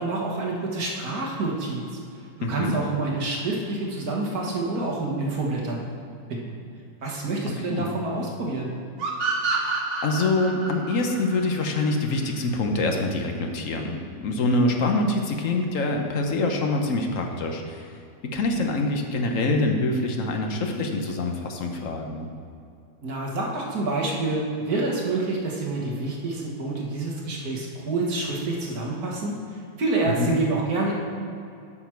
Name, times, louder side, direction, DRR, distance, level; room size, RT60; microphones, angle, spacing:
voice 1, 0.0-1.8 2.5-5.8 6.4-6.5 7.0-8.7 23.0-31.0, right 2 dB, 60° right, -2 dB, 1.8 m, -27 dB
voice 2, 2.4-2.8 7.5-7.9 10.0-17.9 18.2-22.3 30.1-30.3, left 2 dB, 55° left, 3 dB, 1.1 m, -25 dB
sound 1, 9.0-12.4, right 4 dB, 85° right, 1.8 m, -28 dB
10.0 x 6.2 x 4.6 m, 2.6 s
omnidirectional pair, 1.8 m